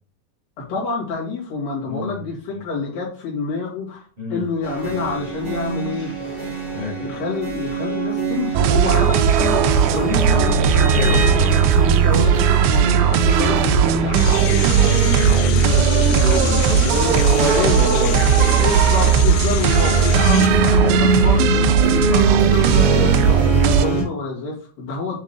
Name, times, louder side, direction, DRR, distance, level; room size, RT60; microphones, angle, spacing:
voice 1, 0.6-4.0 4.3-6.1 7.0-15.0 17.0-17.2 17.6-17.8 18.6-25.2, left 4 dB, 55° left, -5 dB, 3.5 m, -28 dB
voice 2, 1.8-2.2 2.5-2.6 4.2-4.5 6.7-7.0 10.0-10.4 10.9-11.3 12.0-12.2 14.8-18.6, left 2 dB, 55° right, -4 dB, 0.4 m, -27 dB
sound 1, 4.6-24.0, right 3 dB, 15° left, 2.4 m, -26 dB
sound 2, 8.6-23.9, right 7 dB, 85° right, 2.6 m, -16 dB
sound 3, 14.1-20.5, left 10 dB, 85° left, 3.0 m, -29 dB
8.0 x 3.6 x 3.7 m, 0.41 s
omnidirectional pair, 5.2 m